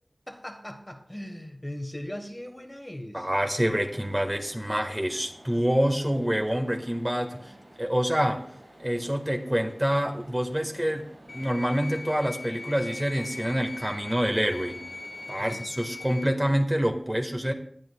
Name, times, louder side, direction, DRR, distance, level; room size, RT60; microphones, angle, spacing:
voice 1, 0.3-3.3 15.3-15.7, left 1 dB, 20° left, 4 dB, 1.4 m, -39 dB
voice 2, 3.1-8.4 8.8-14.8 15.3-17.5, equal, 15° right, 3 dB, 1.7 m, -27 dB
sound 1, 3.3-15.3, right 1 dB, 70° right, 5.7 m, -52 dB
sound 2, 11.3-16.3, left 3 dB, 70° left, 0.4 m, -40 dB
19.0 x 10.5 x 2.4 m, 0.62 s
wide cardioid pair, 45°, 0 cm